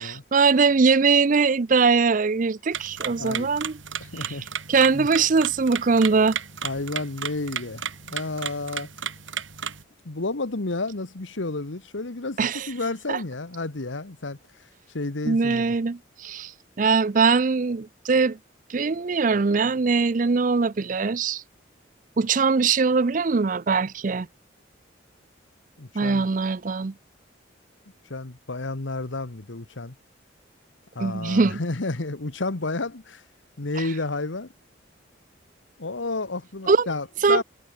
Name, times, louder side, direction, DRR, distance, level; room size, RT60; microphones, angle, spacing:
voice 1, 0.0-3.7 4.2-4.4 4.7-6.4 12.4-12.7 13.1-13.2 15.2-16.5 16.8-18.4 18.7-21.4 22.2-24.3 25.9-26.9 31.0-31.6 36.7-36.9 37.2-37.4, right 4 dB, 45° right, 0.5 m, -21 dB
sound 1, 2.7-9.8, right 8 dB, 90° right, 4.5 m, -34 dB
voice 2, 3.2-3.5 4.0-4.5 4.9-5.1 6.6-8.9 10.0-14.4 14.9-15.7 25.8-26.3 28.1-29.9 30.9-33.2 33.6-34.5 35.8-37.4, left 2 dB, 80° left, 1.4 m, -31 dB
head